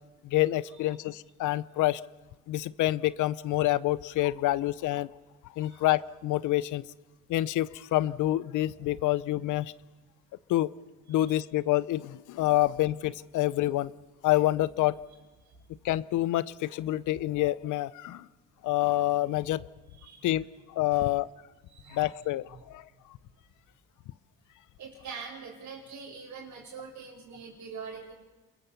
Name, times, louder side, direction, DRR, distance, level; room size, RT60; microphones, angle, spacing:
voice 1, 0.2-2.0 2.5-5.1 5.6-6.8 7.3-9.7 10.5-10.7 11.1-13.9 14.2-15.0 15.8-18.3 18.6-19.6 20.2-21.3 21.9-22.8, left 15 dB, 80° left, 20 dB, 0.6 m, -27 dB
voice 2, 20.0-20.3 20.9-21.0 21.7-22.1 24.8-28.2, right 5 dB, 65° right, -5 dB, 4.3 m, -44 dB
28.0 x 15.0 x 7.1 m, 1.2 s
cardioid pair, 90°, 30 cm